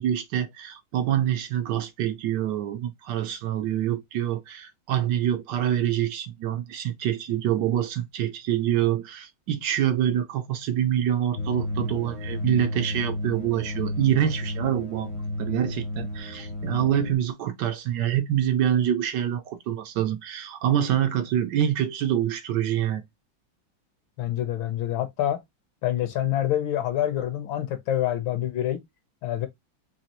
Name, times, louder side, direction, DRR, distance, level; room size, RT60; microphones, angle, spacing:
voice 1, 0.0-15.1 15.4-23.0, right 10 dB, 75° right, 1.1 m, -26 dB
sound 1, 11.4-17.2, left 1 dB, 35° left, 0.6 m, -32 dB
voice 2, 24.2-25.4 25.8-28.8 29.2-29.5, left 12 dB, 80° left, 1.7 m, -26 dB
4.1 x 3.0 x 2.9 m
omnidirectional pair, 2.1 m